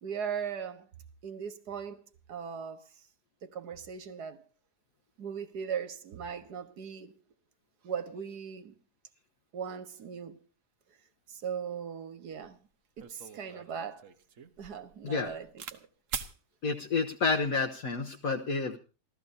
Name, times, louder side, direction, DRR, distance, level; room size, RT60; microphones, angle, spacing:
voice 1, 0.0-0.9 1.2-2.9 3.4-4.4 5.2-7.1 7.8-8.7 9.5-10.4 11.3-12.6 13.0-14.0 14.6-15.8, right 7 dB, 85° right, 1.8 m, -38 dB
sound 1, 12.4-12.5 13.0-15.8 16.1-16.4 17.2-17.6, right 7 dB, 55° right, 1.3 m, -42 dB
voice 2, 15.0-15.4 16.6-18.8, left 4 dB, 65° left, 1.5 m, -30 dB
28.5 x 13.5 x 2.7 m
omnidirectional pair, 1.7 m